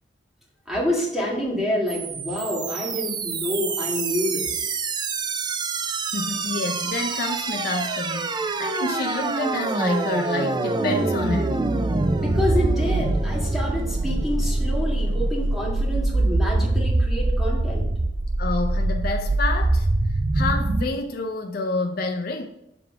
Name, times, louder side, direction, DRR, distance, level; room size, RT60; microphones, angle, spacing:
voice 1, 0.7-4.8 12.2-17.9, left 1 dB, ahead, -4 dB, 2.0 m, -28 dB
sound 1, 1.9-20.9, right 2 dB, 25° right, 0.4 m, -24 dB
voice 2, 6.1-11.7 18.4-22.5, left 3 dB, 55° left, 2 dB, 0.6 m, -29 dB
7.0 x 3.5 x 5.9 m, 0.83 s
head